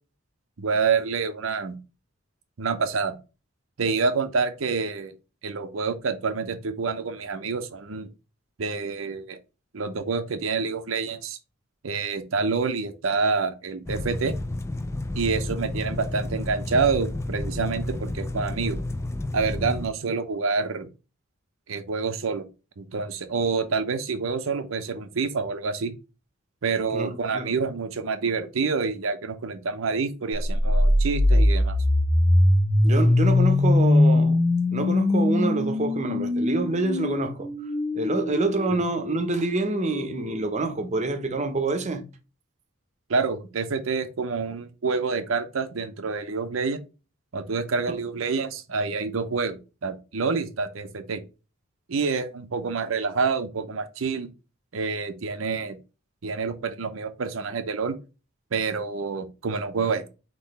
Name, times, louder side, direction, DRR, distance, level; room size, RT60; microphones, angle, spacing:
voice 1, 0.6-1.8 2.6-3.2 3.8-5.1 5.4-8.1 8.6-9.4 9.7-11.4 11.8-14.4 15.1-18.8 19.3-20.9 21.7-22.5 22.8-25.9 26.6-31.8 38.7-38.8 43.1-46.8 47.3-51.2 51.9-54.3 54.7-55.8 56.2-58.0 58.5-60.1, right 4 dB, 75° right, 0.6 m, -27 dB
sound 1, 13.9-19.9, left 2 dB, 15° left, 0.3 m, -31 dB
voice 2, 26.9-27.5 32.8-37.5 37.9-42.1 47.9-48.0, right 2 dB, 35° right, 0.7 m, -27 dB
sound 2, 30.4-40.4, left 1 dB, 55° left, 1.7 m, -22 dB
3.8 x 2.9 x 4.1 m
head